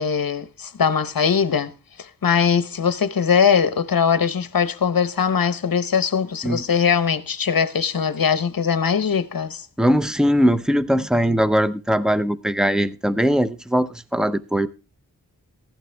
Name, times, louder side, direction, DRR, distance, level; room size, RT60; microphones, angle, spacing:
voice 1, 0.0-1.7 2.0-9.7, left 6 dB, 70° left, 1.0 m, -21 dB
voice 2, 9.8-14.7, equal, ahead, 0.7 m, -20 dB
15.0 x 11.5 x 3.4 m
wide cardioid pair, 65°, 36 cm